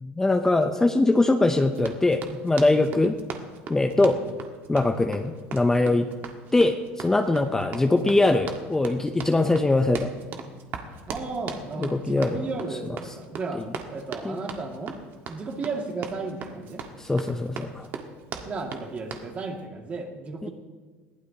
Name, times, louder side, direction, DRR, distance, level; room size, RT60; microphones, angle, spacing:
voice 1, 0.0-3.2 3.7-4.2 4.7-6.1 6.5-10.1 11.8-12.5 13.5-13.6 14.2-14.4 17.0-17.9 20.4-20.5, left 2 dB, 10° left, 6 dB, 0.7 m, -22 dB
Run, 1.7-19.3, right 6 dB, 55° right, 1.7 m, -39 dB
voice 2, 2.6-2.9 4.1-4.3 5.9-6.1 11.1-13.6 13.9-15.0 15.3-16.8 18.5-20.5, right 3 dB, 30° right, 2 dB, 2.3 m, -34 dB
21.0 x 15.5 x 3.0 m, 1.4 s
supercardioid pair, 120°, 4 cm